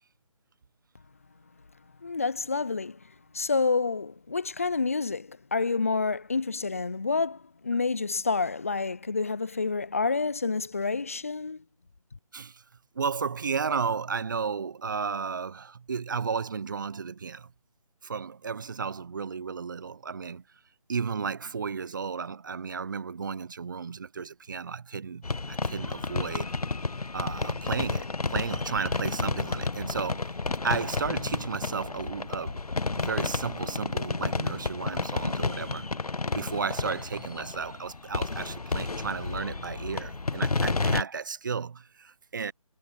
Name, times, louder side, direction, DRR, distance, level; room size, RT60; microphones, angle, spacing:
voice 1, 2.0-3.0 3.3-11.6, left 4 dB, 25° left, 0.4 m, -28 dB
voice 2, 12.9-17.5 18.0-20.4 20.9-26.5 27.1-30.3 30.6-32.6 33.0-35.9 36.3-42.5, right 5 dB, 35° right, 0.7 m, -33 dB
sound 1, 25.2-41.0, left 3 dB, 85° left, 1.3 m, -31 dB
figure-of-eight pair, 160°, 19 cm